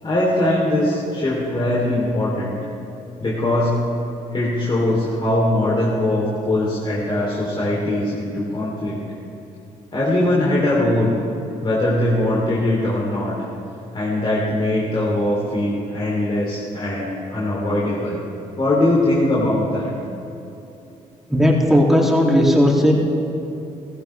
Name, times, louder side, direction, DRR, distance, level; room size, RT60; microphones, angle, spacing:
voice 1, 0.0-2.6 3.2-3.7 4.3-9.0 9.9-11.1 11.6-13.3 13.9-18.2 18.6-19.9, left 1 dB, 35° left, -6 dB, 3.3 m, -21 dB
voice 2, 21.3-22.9, equal, ahead, -2 dB, 2.8 m, -15 dB
16.0 x 15.0 x 3.4 m, 2.8 s
supercardioid pair, 70°, 15 cm